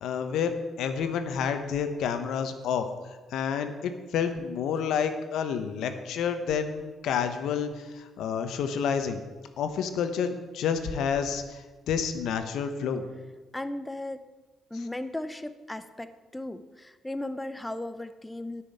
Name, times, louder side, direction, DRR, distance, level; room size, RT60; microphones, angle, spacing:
voice 1, 0.0-2.9 3.3-9.2 9.6-13.0, left 7 dB, 80° left, 8 dB, 1.1 m, -29 dB
voice 2, 13.5-14.3 14.7-18.6, left 1 dB, 10° left, 10 dB, 0.8 m, -36 dB
9.9 x 6.2 x 8.6 m, 1.3 s
cardioid pair, 90°, 0 cm